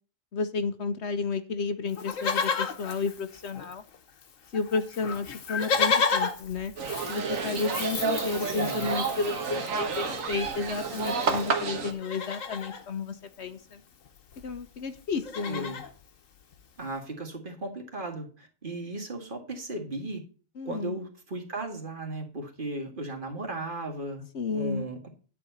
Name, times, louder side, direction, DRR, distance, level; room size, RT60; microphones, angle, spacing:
voice 1, 0.3-3.8 4.5-6.7 7.1-13.8 14.4-15.7 20.6-21.0 24.3-24.9, left 4 dB, 60° left, 10 dB, 1.1 m, -32 dB
Livestock farm animals working animals, 1.9-4.0 4.2-4.3 4.5-11.5 11.9-12.8 14.1-14.2 14.3-14.6 15.0-15.9 16.5-16.6, left 5 dB, 80° left, 1.5 m, -32 dB
sound 1, 6.8-11.9, right 5 dB, 80° right, 1.7 m, -30 dB
voice 2, 8.5-8.9 15.5-15.8 16.8-20.2 20.7-24.3 24.5-25.1, right 2 dB, 40° right, 3 dB, 2.0 m, -36 dB
9.9 x 5.0 x 7.8 m, 0.39 s
omnidirectional pair, 1.4 m